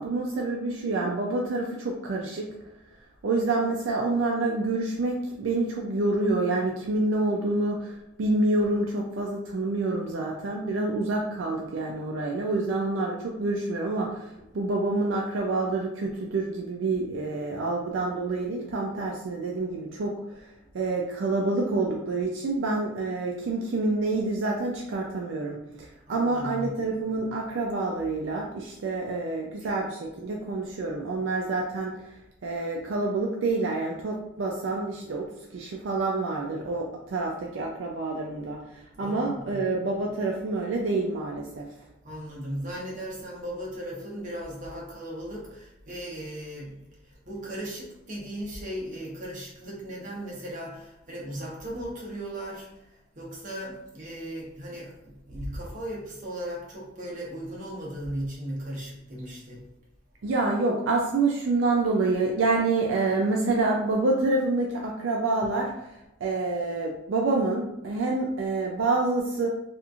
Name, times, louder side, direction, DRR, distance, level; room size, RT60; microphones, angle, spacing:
voice 1, 0.0-2.5 3.2-14.3 14.5-20.1 20.7-32.0 32.4-38.6 39.0-41.7 60.2-65.9 66.2-69.5, right 2 dB, 75° right, -1 dB, 0.4 m, -27 dB
voice 2, 26.1-26.9 29.6-29.7 39.0-39.6 42.0-59.7, right 1 dB, 45° right, -4 dB, 0.9 m, -37 dB
2.9 x 2.5 x 2.4 m, 0.88 s
head